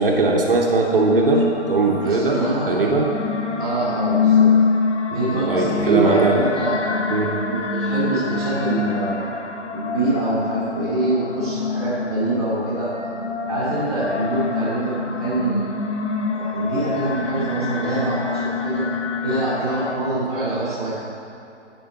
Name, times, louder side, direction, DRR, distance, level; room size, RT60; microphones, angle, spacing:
voice 1, 0.0-3.1 5.1-5.2 5.5-6.4 7.1-7.5 7.8-8.0, right 3 dB, 50° right, 0 dB, 1.1 m, -20 dB
sound 1, 0.9-20.0, left 5 dB, 85° left, 0.9 m, -25 dB
voice 2, 2.0-2.8 3.6-4.5 5.1-6.8 7.5-9.2 9.7-12.9 13.4-15.8 16.3-18.8 19.2-20.9, right 2 dB, ahead, -19 dB, 1.1 m, -24 dB
10.5 x 5.0 x 4.1 m, 2.7 s
hypercardioid pair, 165°, 35 cm